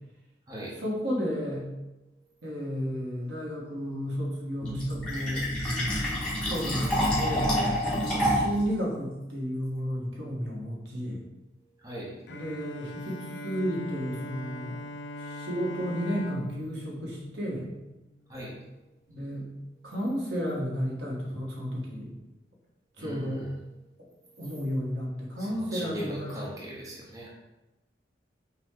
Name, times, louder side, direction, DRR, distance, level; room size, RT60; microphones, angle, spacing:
voice 1, 0.8-1.7 2.4-5.5 6.5-7.5 7.8-11.2 12.3-14.7 15.2-17.7 19.1-19.5 19.8-22.1 23.0-23.5 24.4-26.3, equal, 80° right, -3 dB, 1.2 m, -32 dB
Fill (with liquid), 4.6-8.6, equal, 5° left, 1.2 m, -27 dB
voice 2, 11.8-12.1 18.3-18.5 23.0-23.5 25.4-27.3, equal, 20° right, -5 dB, 0.8 m, -39 dB
Bowed string instrument, 12.3-18.2, left 1 dB, 70° left, 0.4 m, -41 dB
5.8 x 2.2 x 3.6 m, 1.0 s
head